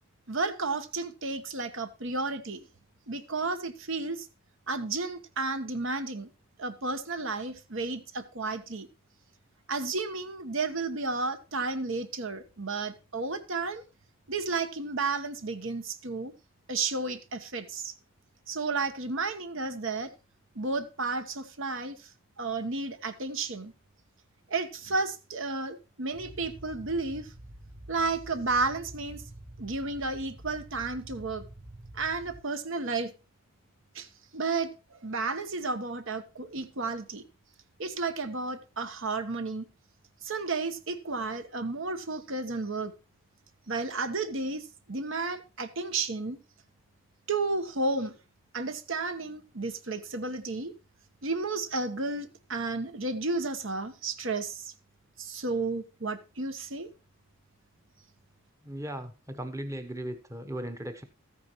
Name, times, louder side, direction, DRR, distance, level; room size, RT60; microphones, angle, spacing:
voice 1, 0.3-2.7 3.1-4.3 4.7-6.3 6.6-8.9 9.7-13.8 14.3-16.3 16.7-17.9 18.5-20.1 20.5-22.0 22.4-23.7 24.5-27.3 27.9-29.2 29.6-31.4 31.9-33.1 33.9-34.1 34.3-37.2 37.8-39.7 40.2-42.9 43.7-46.4 47.3-48.2 48.5-50.7 51.2-54.7 55.2-56.9, right 3 dB, 60° right, 1.1 m, -32 dB
sound 1, 26.1-32.4, right 1 dB, 35° right, 1.3 m, -47 dB
voice 2, 58.6-61.0, right 1 dB, 15° right, 1.0 m, -37 dB
14.0 x 9.6 x 3.0 m
head